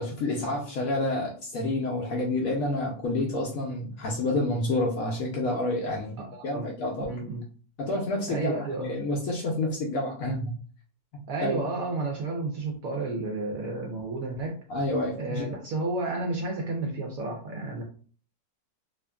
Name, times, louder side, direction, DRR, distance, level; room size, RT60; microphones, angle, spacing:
voice 1, 0.0-6.2 6.4-7.1 7.8-10.5 11.4-11.6 14.7-15.5, left 2 dB, 70° left, -1 dB, 0.8 m, -29 dB
voice 2, 6.3-6.7 7.0-7.4 8.3-8.9 11.3-14.6 15.2-17.8, right 2 dB, 70° right, 0 dB, 0.8 m, -31 dB
2.8 x 2.4 x 2.2 m, 0.42 s
omnidirectional pair, 1.9 m